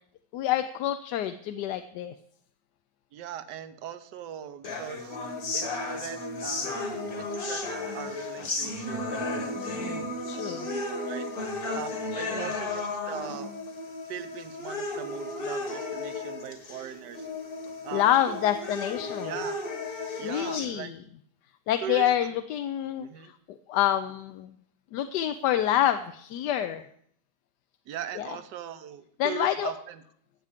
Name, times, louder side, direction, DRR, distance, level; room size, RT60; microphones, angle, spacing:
voice 1, 0.3-2.1 9.6-10.0 10.3-10.7 12.1-12.5 17.9-19.3 20.2-21.0 21.7-24.5 24.9-26.8 28.2-28.3 29.2-29.7, left 11 dB, 80° left, 9 dB, 1.2 m, -27 dB
voice 2, 3.1-5.2 5.5-11.3 11.7-13.5 14.1-17.3 17.8-18.5 19.2-19.6 20.2-20.9 21.8-22.3 23.0-23.3 27.9-30.0, right 10 dB, 80° right, 11 dB, 1.4 m, -40 dB
sound 1, 4.6-20.7, left 2 dB, 60° left, 2.3 m, -34 dB
14.0 x 8.3 x 5.0 m, 0.66 s
omnidirectional pair, 1.8 m